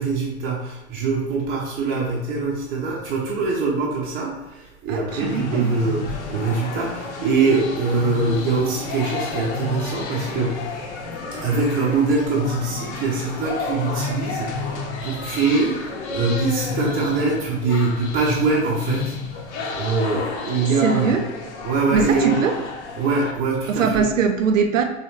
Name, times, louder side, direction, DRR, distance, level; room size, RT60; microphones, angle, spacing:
voice 1, 0.0-10.6 11.3-15.8 16.1-19.2 19.7-21.2 21.6-22.4 22.9-24.1, right 3 dB, 20° right, -4 dB, 0.7 m, -23 dB
voice 2, 4.9-5.7 20.6-21.2 21.9-22.6 23.7-24.8, right 6 dB, 70° right, 6 dB, 0.6 m, -21 dB
sound 1, 5.1-23.3, left 4 dB, 55° left, 0.8 m, -31 dB
4.1 x 3.1 x 3.0 m, 1.0 s
figure-of-eight pair, 85°, 41 cm